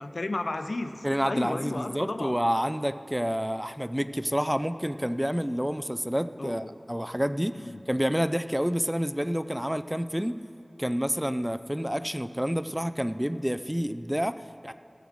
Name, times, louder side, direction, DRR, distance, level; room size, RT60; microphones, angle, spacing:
voice 1, 0.0-2.4 6.4-6.8 7.5-7.8, left 2 dB, 90° left, 9 dB, 0.5 m, -33 dB
voice 2, 1.0-10.4 10.8-14.7, equal, 10° right, 12 dB, 0.3 m, -29 dB
15.5 x 7.2 x 6.3 m, 2.7 s
wide cardioid pair, 50°, 0 cm